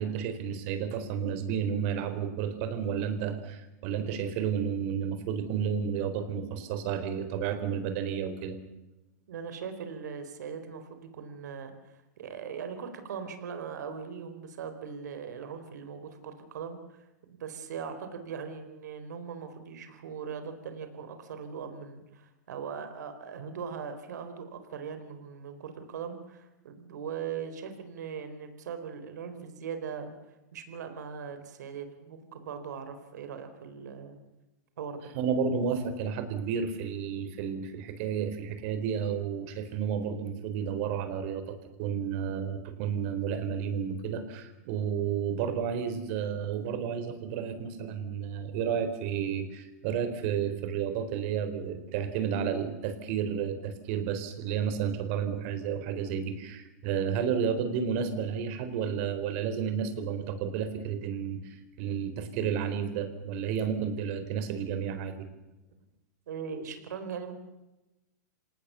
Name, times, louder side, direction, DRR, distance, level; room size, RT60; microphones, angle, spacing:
voice 1, 0.0-8.6 35.1-65.3, right 7 dB, 45° right, 9 dB, 4.3 m, -31 dB
voice 2, 9.3-17.0 17.3-30.1 30.5-34.2 34.8-35.1 66.3-67.3, right 6 dB, 75° right, 9 dB, 4.3 m, -40 dB
27.0 x 18.5 x 7.0 m, 1.0 s
hypercardioid pair, 140°, 9 cm